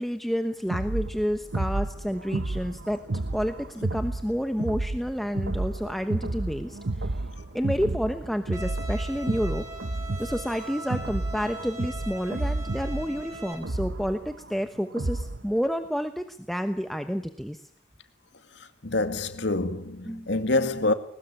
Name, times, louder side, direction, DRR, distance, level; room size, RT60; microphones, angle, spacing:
voice 1, 0.0-3.0 3.3-7.2 7.5-9.6 10.2-17.6 20.0-20.3, equal, ahead, 1.1 m, -30 dB
sound 1, 0.7-15.5, right 2 dB, 75° right, 1.0 m, -31 dB
Bowed string instrument, 8.5-13.5, right 1 dB, 15° right, 5.0 m, -41 dB
voice 2, 18.8-20.9, left 2 dB, 75° left, 2.1 m, -26 dB
21.5 x 20.0 x 8.7 m
head